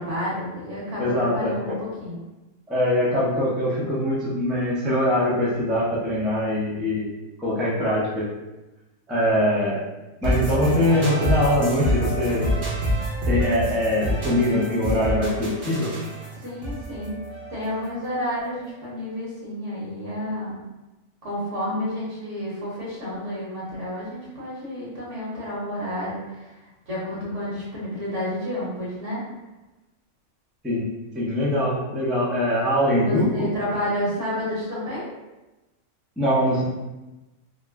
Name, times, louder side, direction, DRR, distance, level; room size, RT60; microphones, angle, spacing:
voice 1, 0.0-2.2 16.3-17.2 17.5-20.5 21.2-29.2 33.0-35.1, equal, 60° right, -6 dB, 1.3 m, -30 dB
voice 2, 1.0-1.8 2.7-7.1 7.4-8.3 9.1-9.9 10.2-12.6 13.3-15.9 30.6-30.9 31.1-33.5 36.2-36.6, left 1 dB, ahead, -9 dB, 0.4 m, -22 dB
sound 1, 10.2-18.1, right 1 dB, 45° right, 0.9 m, -27 dB
3.0 x 2.0 x 3.4 m, 1.1 s
omnidirectional pair, 1.5 m